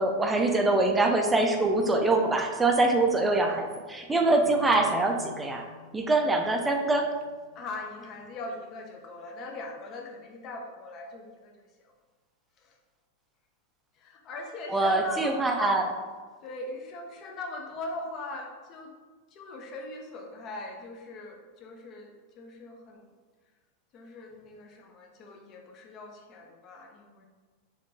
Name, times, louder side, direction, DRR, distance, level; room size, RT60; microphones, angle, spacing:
voice 1, 0.0-5.7 5.9-7.1 14.7-15.8, right 2 dB, 10° right, 3 dB, 0.4 m, -24 dB
sound 1, 4.4-7.6, left 4 dB, 65° left, 0.9 m, -45 dB
voice 2, 7.5-11.9 12.6-12.8 13.9-15.8 16.4-18.9 19.3-23.0 23.9-27.3, left 2 dB, 35° left, 1 dB, 0.6 m, -40 dB
4.3 x 2.7 x 2.6 m, 1.4 s
figure-of-eight pair, 90°, 0 cm